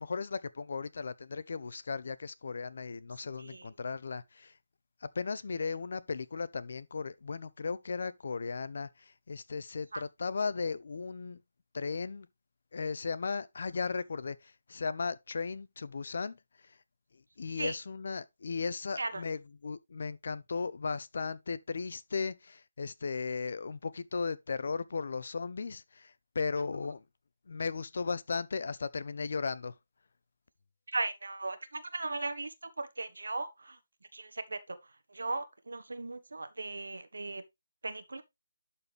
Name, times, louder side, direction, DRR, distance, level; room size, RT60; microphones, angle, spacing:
voice 1, 0.0-4.6 5.0-11.4 11.7-12.3 12.7-16.8 17.1-27.0 27.5-29.7, left 4 dB, 55° left, 0.7 m, -36 dB
voice 2, 30.9-33.8 34.1-34.8 35.1-37.4 37.8-38.2, right 3 dB, 80° right, 1.2 m, -37 dB
11.5 x 4.3 x 3.3 m
figure-of-eight pair, 160°, 0 cm